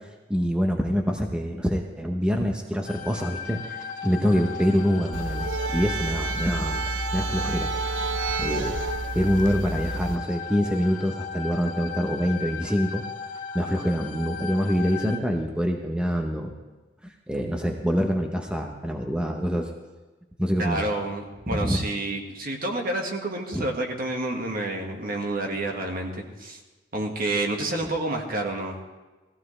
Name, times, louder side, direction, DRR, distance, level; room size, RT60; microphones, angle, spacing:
voice 1, 0.3-7.7 8.4-8.8 9.1-13.0 13.5-16.5 17.3-19.7 20.4-20.9 21.5-21.8 23.5-23.6, equal, 5° right, 2 dB, 0.8 m, -25 dB
sound 1, 2.9-15.2, left 6 dB, 45° left, 1.5 m, -36 dB
sound 2, 5.1-10.2, right 3 dB, 80° right, 0.6 m, -29 dB
voice 2, 20.6-26.6 26.9-28.8, right 2 dB, 50° right, 2 dB, 1.7 m, -29 dB
17.5 x 15.0 x 3.3 m, 1.2 s
head